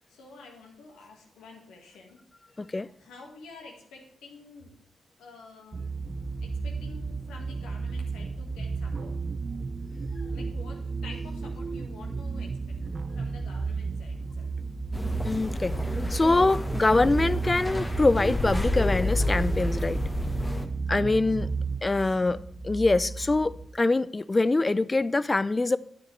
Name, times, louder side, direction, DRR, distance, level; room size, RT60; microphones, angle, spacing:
voice 1, 0.1-2.2 2.5-4.7 5.2-6.0 6.4-9.1 10.3-12.8 13.1-14.5 20.9-21.5 21.8-22.3, left 4 dB, 85° left, 1.7 m, -49 dB
voice 2, 2.6-2.9 15.2-15.7 16.1-20.0 20.9-21.5 21.8-22.4 22.6-25.8, left 2 dB, 30° left, 0.4 m, -24 dB
sound 1, 5.7-21.8, right 5 dB, 50° right, 0.5 m, -34 dB
sound 2, 6.0-23.7, right 2 dB, 5° right, 1.2 m, -39 dB
sound 3, 14.9-20.7, left 2 dB, 15° left, 1.2 m, -30 dB
9.6 x 9.2 x 3.3 m
hypercardioid pair, 40°, 0 cm